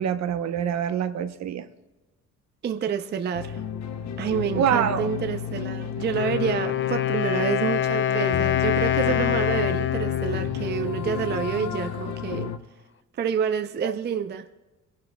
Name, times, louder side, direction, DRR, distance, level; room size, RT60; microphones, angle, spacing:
voice 1, 0.0-1.7 4.5-5.1 13.8-13.9, right 9 dB, 65° right, 10 dB, 0.8 m, -25 dB
voice 2, 2.6-3.6 4.2-12.5 13.2-14.5, right 7 dB, 35° right, 8 dB, 0.5 m, -28 dB
sound 1, 3.3-12.6, left 8 dB, 65° left, 0.9 m, -32 dB
Wind instrument woodwind instrument, 6.0-11.8, left 11 dB, 40° left, 0.5 m, -26 dB
22.0 x 11.5 x 2.2 m, 1.1 s
cardioid pair, 130°, 30 cm